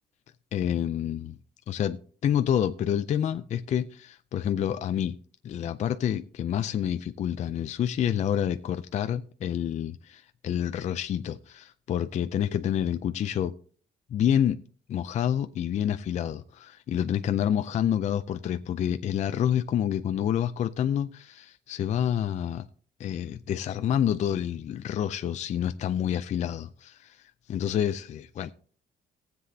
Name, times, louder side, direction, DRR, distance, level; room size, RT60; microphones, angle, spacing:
voice 1, 0.5-1.4 1.7-5.2 5.4-13.5 14.1-14.6 14.9-22.7 23.0-28.5, left 9 dB, 40° left, 0.4 m, -28 dB
18.5 x 7.8 x 2.7 m
cardioid pair, 170°, 18 cm